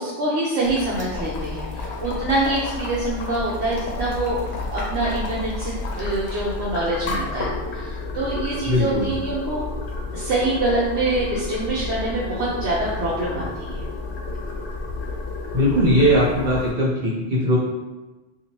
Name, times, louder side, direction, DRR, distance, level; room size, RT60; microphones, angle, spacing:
voice 1, 0.0-9.6 10.1-13.8, right 2 dB, 75° right, -7 dB, 0.9 m, -25 dB
Boiling, 0.6-16.7, left 3 dB, 75° left, 0.9 m, -31 dB
voice 2, 8.7-9.0 15.5-17.6, equal, 45° right, -8 dB, 1.3 m, -19 dB
2.7 x 2.5 x 3.0 m, 1.1 s
omnidirectional pair, 1.2 m